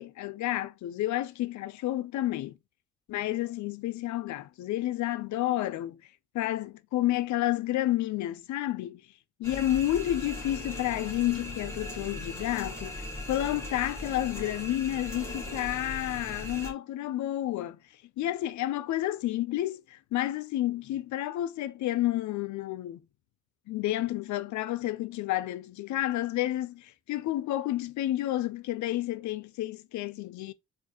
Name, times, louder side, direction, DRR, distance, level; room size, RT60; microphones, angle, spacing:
voice 1, 0.0-2.6 3.1-6.0 6.3-9.0 9.4-13.0 13.3-17.8 18.2-23.0 23.7-30.5, left 14 dB, 70° left, 0.5 m, -30 dB
sound 1, 9.4-16.7, left 1 dB, 10° left, 1.5 m, -39 dB
4.5 x 2.5 x 2.9 m
cardioid pair, 90°, 30 cm